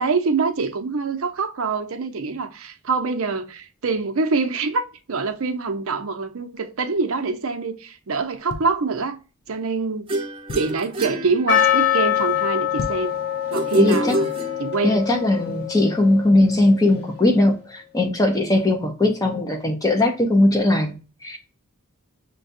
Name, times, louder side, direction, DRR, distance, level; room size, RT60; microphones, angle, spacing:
voice 1, 0.0-9.2 9.5-10.1 10.5-13.1 13.5-14.3 14.6-15.0, right 4 dB, 70° right, 0.6 m, -25 dB
sound 1, 8.3-9.4 9.9-10.0 10.2-11.0 11.4-11.7 12.0-12.1 12.6-13.2 13.6-13.7, left 3 dB, 75° left, 0.5 m, -35 dB
sound 2, 10.1-12.0 13.5-15.1, right 1 dB, 25° right, 0.7 m, -26 dB
Percussion, 11.5-16.4, left 11 dB, 50° left, 1.5 m, -24 dB
voice 2, 13.8-14.2 14.8-21.0 21.2-21.4, left 1 dB, 15° left, 0.6 m, -19 dB
6.4 x 2.3 x 2.5 m
head